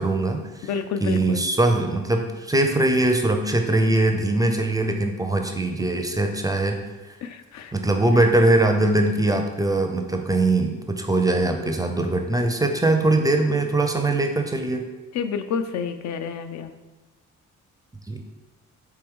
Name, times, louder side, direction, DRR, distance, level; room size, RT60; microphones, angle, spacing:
voice 1, 0.0-0.7 1.0-6.8 7.7-14.8 18.1-18.2, right 2 dB, 10° right, 4 dB, 0.4 m, -21 dB
voice 2, 0.6-1.4 7.2-7.7 15.1-16.7, left 6 dB, 65° left, 8 dB, 0.5 m, -29 dB
4.6 x 3.0 x 3.6 m, 1.2 s
cardioid pair, 90°, 30 cm